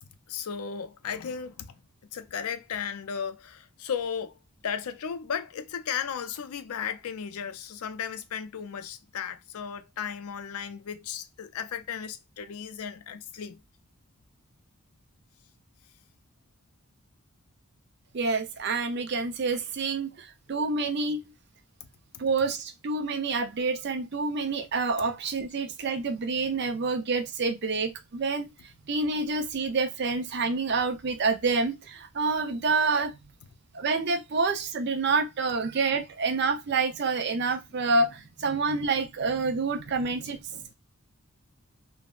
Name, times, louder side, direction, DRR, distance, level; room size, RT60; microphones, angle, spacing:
voice 1, 0.0-1.7 2.1-4.3 4.6-13.6 21.8-21.9 22.1-22.2 40.2-40.7, left 7 dB, 90° left, 0.4 m, -35 dB
voice 2, 18.1-21.2 22.2-28.5 28.9-33.2 33.7-40.4, right 4 dB, 50° right, 0.5 m, -28 dB
3.4 x 2.1 x 2.3 m
head